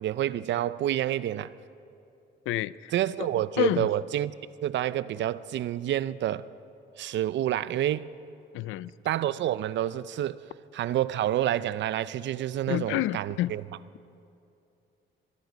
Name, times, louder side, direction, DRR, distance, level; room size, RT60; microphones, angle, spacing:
voice 1, 0.0-1.5 2.9-4.3 4.6-6.4 7.0-8.1 9.0-10.4 10.7-13.6, right 12 dB, 65° right, 0.5 m, -28 dB
voice 2, 2.5-2.9 3.2-3.3 3.6-3.9 8.5-8.9 12.7-13.6, left 16 dB, 85° left, 0.4 m, -28 dB
24.0 x 10.5 x 5.2 m
cardioid pair, 90°, 20 cm